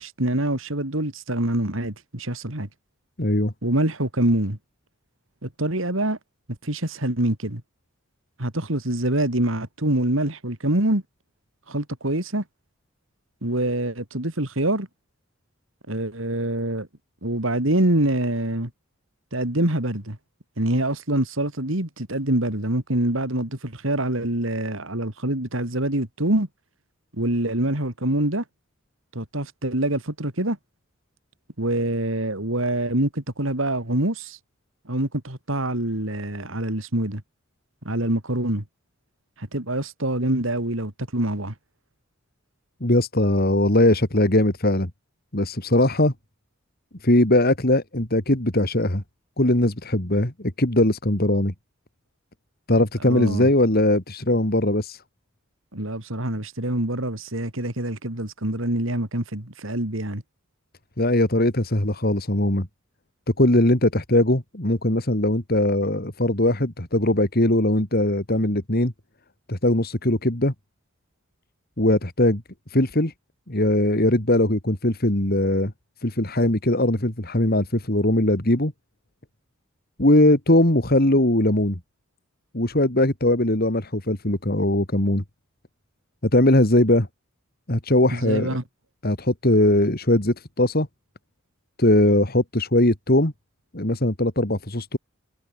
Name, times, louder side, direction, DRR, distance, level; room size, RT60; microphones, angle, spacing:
voice 1, 0.0-2.7 3.6-4.6 5.4-6.2 6.6-7.6 8.4-11.0 11.7-12.4 13.4-14.9 15.9-16.9 17.2-18.7 19.3-20.2 20.6-26.5 27.1-28.4 29.1-30.6 31.6-34.4 34.9-37.2 37.9-38.6 39.4-41.5 53.1-53.5 55.7-60.2 88.1-88.6, right 1 dB, 70° right, 3.7 m, -25 dB
voice 2, 3.2-3.5 42.8-44.9 45.3-46.1 47.0-49.0 49.4-51.5 52.7-55.0 61.0-62.7 63.4-68.9 69.5-70.5 71.8-72.4 72.7-73.1 73.5-75.7 76.0-78.7 80.0-81.8 82.5-85.2 86.3-87.1 87.7-88.6 89.0-90.9 91.8-93.3 93.7-95.0, left 1 dB, 45° left, 3.0 m, -20 dB
head